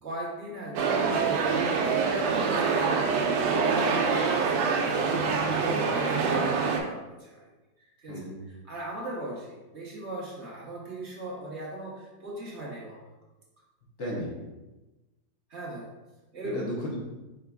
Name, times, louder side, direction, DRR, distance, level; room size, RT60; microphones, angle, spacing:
voice 1, 0.0-1.9 2.2-3.8 4.7-5.1 5.5-7.5 7.8-8.3 8.7-13.1 15.5-15.9 16.3-16.7, right 1 dB, 45° right, -5 dB, 1.0 m, -38 dB
sound 1, 0.8-6.8, right 5 dB, 85° right, 1.3 m, -25 dB
voice 2, 5.1-5.5 8.1-8.4 14.0-14.4 16.4-17.0, equal, 50° left, -3 dB, 0.9 m, -35 dB
5.0 x 4.4 x 2.3 m, 1.1 s
omnidirectional pair, 2.0 m